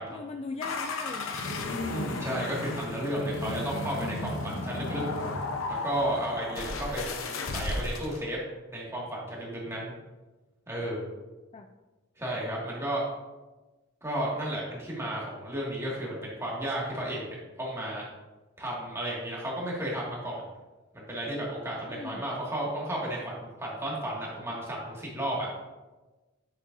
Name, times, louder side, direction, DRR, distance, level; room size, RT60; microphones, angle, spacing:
voice 1, 0.1-1.4 11.5-11.7 21.9-22.2, left 4 dB, 30° left, 6 dB, 0.3 m, -39 dB
sound 1, 0.6-8.2, left 2 dB, 90° left, 0.8 m, -34 dB
voice 2, 1.9-5.0 5.7-7.1 7.5-8.4 8.7-9.9 10.7-11.1 12.2-13.1 14.0-18.0 18.6-20.5 20.9-25.5, right 1 dB, 15° right, -5 dB, 2.0 m, -33 dB
9.0 x 7.6 x 2.6 m, 1.2 s
head